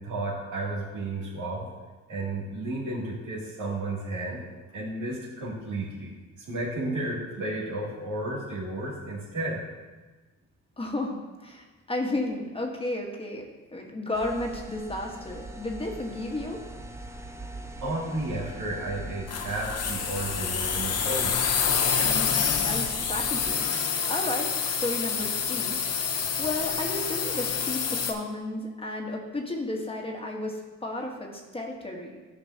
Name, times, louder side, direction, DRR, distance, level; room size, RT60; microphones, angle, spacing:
voice 1, 0.0-1.7 2.1-4.4 4.7-6.1 6.4-9.6 17.8-21.4, right 2 dB, 90° right, -6 dB, 2.6 m, -32 dB
voice 2, 10.8-11.1 11.4-13.4 13.7-16.6 22.0-23.6 24.1-25.8 26.4-32.1, left 2 dB, 20° left, 0 dB, 1.3 m, -33 dB
sound 1, 14.1-23.6, right 1 dB, 10° right, 0.7 m, -41 dB
sound 2, 19.3-28.1, left 6 dB, 55° left, 0.9 m, -27 dB
13.0 x 5.2 x 2.8 m, 1.3 s
cardioid pair, 90°, 30 cm